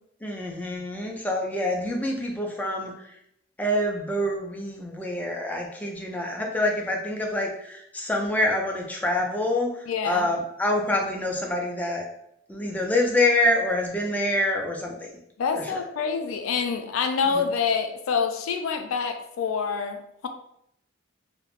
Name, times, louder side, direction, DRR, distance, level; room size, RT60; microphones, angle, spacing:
voice 1, 0.2-3.2 3.6-12.1 12.5-14.9 15.6-15.8 17.3-17.4, left 1 dB, 10° left, 0 dB, 0.3 m, -26 dB
voice 2, 9.9-10.3 15.4-20.0, left 5 dB, 85° left, 6 dB, 0.4 m, -26 dB
2.4 x 2.1 x 3.0 m, 0.75 s
head